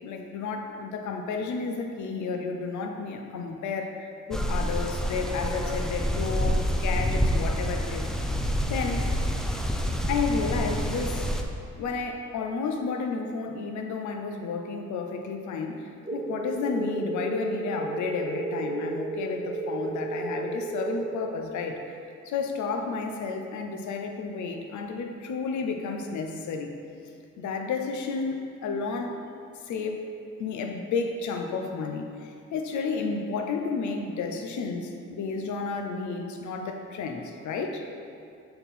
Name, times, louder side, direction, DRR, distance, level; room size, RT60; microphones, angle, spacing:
voice 1, 0.0-4.0 4.3-8.1 8.7-9.1 10.1-11.3 11.8-21.8 22.2-26.7 27.4-29.2 29.6-30.0 30.4-37.8, left 4 dB, 70° left, 3 dB, 0.7 m, -31 dB
sound 1, 4.3-11.4, equal, ahead, 0.4 m, -27 dB
sound 2, 16.1-21.0, right 3 dB, 15° right, 1.1 m, -33 dB
7.8 x 3.7 x 4.2 m, 2.4 s
cardioid pair, 90°, 30 cm